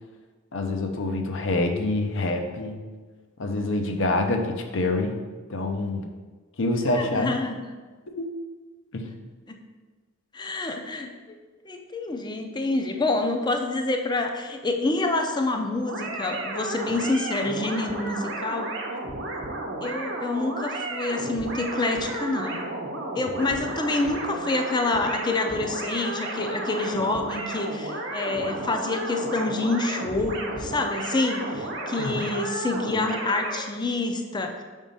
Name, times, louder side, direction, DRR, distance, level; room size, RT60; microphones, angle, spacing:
voice 1, 0.5-2.8 3.4-5.2 5.5-6.1 6.6-7.4 8.1-8.3 8.9-9.1 32.0-32.3, left 2 dB, 65° left, 5 dB, 0.7 m, -26 dB
voice 2, 6.9-7.6 9.0-9.2 9.5-9.6 10.3-11.4 11.6-18.8 19.8-22.6 23.1-34.6, left 2 dB, 20° left, 4 dB, 0.5 m, -27 dB
sound 1, 15.8-33.6, right 2 dB, 60° right, 0.9 m, -33 dB
5.0 x 3.6 x 5.4 m, 1.4 s
head